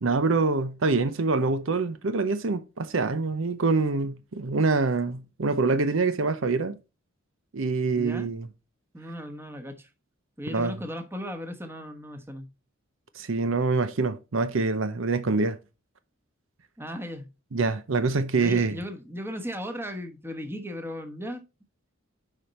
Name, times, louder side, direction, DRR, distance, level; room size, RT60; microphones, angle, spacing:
voice 1, 0.0-6.8 7.5-8.5 10.5-10.7 13.1-15.6 17.5-18.8, right 3 dB, 70° right, 0.7 m, -25 dB
voice 2, 8.0-8.3 8.9-9.9 10.4-12.5 16.8-17.3 18.3-21.4, equal, 10° right, 1.1 m, -36 dB
7.3 x 5.1 x 4.1 m
head